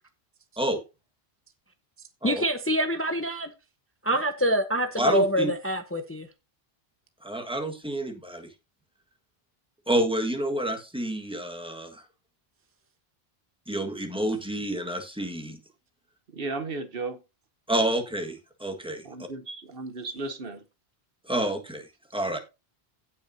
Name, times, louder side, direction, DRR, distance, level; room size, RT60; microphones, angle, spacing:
voice 1, 2.2-3.5 4.0-6.3, equal, 15° left, 0.7 m, -26 dB
voice 2, 5.0-5.5 7.2-8.5 9.9-12.0 13.7-15.6 17.7-19.3 21.3-21.9 22.1-22.4, right 1 dB, 5° right, 1.6 m, -29 dB
voice 3, 16.3-17.2 19.0-20.6, right 3 dB, 65° right, 1.2 m, -35 dB
16.5 x 5.8 x 2.7 m
omnidirectional pair, 1.0 m